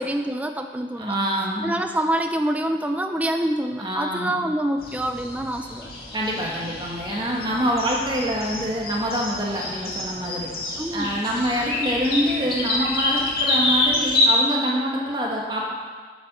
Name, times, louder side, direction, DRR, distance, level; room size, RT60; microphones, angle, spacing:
voice 1, 0.0-1.2 1.6-5.9 10.8-11.2, right 1 dB, 10° right, 5 dB, 0.4 m, -26 dB
voice 2, 1.0-1.8 3.8-4.5 6.1-10.5 10.9-15.7, equal, 25° right, -3 dB, 1.7 m, -26 dB
sound 1, 4.8-14.3, left 2 dB, 55° left, 2.1 m, -27 dB
9.1 x 8.2 x 6.2 m, 1.5 s
head